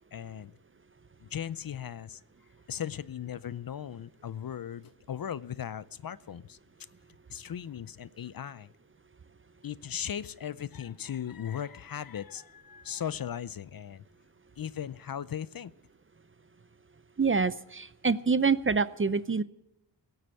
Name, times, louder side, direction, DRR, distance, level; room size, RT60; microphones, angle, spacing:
voice 1, 0.1-0.5 1.2-2.2 2.7-6.6 7.3-8.7 9.6-14.0 14.6-15.7, left 9 dB, 50° left, 18 dB, 0.5 m, -37 dB
voice 2, 17.2-19.4, right 4 dB, 30° right, 16 dB, 0.6 m, -26 dB
17.5 x 7.9 x 9.0 m, 0.86 s
wide cardioid pair, 80°, 45 cm